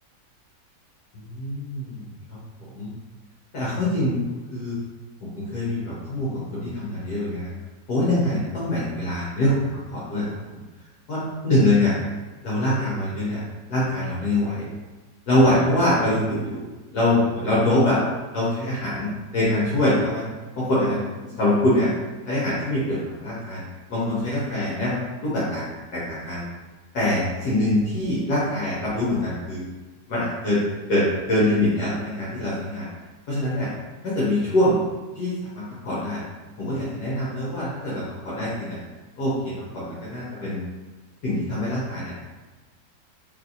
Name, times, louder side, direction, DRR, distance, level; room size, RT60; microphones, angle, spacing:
voice 1, 1.1-2.1 2.7-2.9 3.5-4.2 4.5-4.8 5.2-7.5 7.9-9.5 9.9-10.3 11.1-11.9 12.4-13.4 13.7-14.6 15.3-16.6 16.9-18.0 18.3-20.2 20.5-21.0 21.4-21.9 22.2-23.6 23.9-25.6 25.9-26.4 26.9-29.6 30.1-30.6 30.9-31.0 31.3-32.9 33.3-33.7 34.0-34.8 35.2-36.2 36.6-38.8 39.2-40.6 41.2-42.1, left 1 dB, 65° left, -8 dB, 1.6 m, -24 dB
3.4 x 3.2 x 4.0 m, 1.2 s
omnidirectional pair, 1.9 m